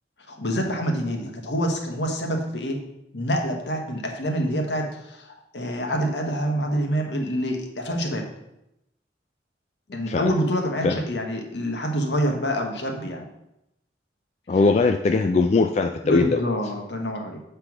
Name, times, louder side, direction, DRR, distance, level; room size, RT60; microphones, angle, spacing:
voice 1, 0.3-2.8 3.1-8.2 9.9-13.3 16.0-17.4, equal, 70° left, 2 dB, 1.3 m, -26 dB
voice 2, 14.5-16.4, left 3 dB, 35° left, 5 dB, 0.3 m, -20 dB
7.7 x 3.4 x 6.0 m, 0.86 s
head